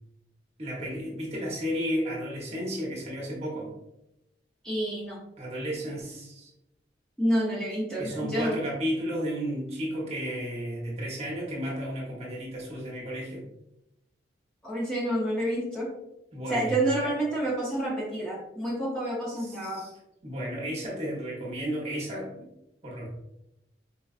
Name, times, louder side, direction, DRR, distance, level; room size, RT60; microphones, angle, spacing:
voice 1, 0.6-3.7 5.4-6.5 8.0-13.4 16.3-16.7 17.0-17.1 19.4-19.9 20.2-22.5 22.8-23.1, equal, 35° right, -3 dB, 0.8 m, -33 dB
voice 2, 4.6-5.2 7.2-8.6 14.6-15.9 16.5-19.8, right 1 dB, 5° left, -6 dB, 0.6 m, -28 dB
4.3 x 2.3 x 2.3 m, 0.87 s
head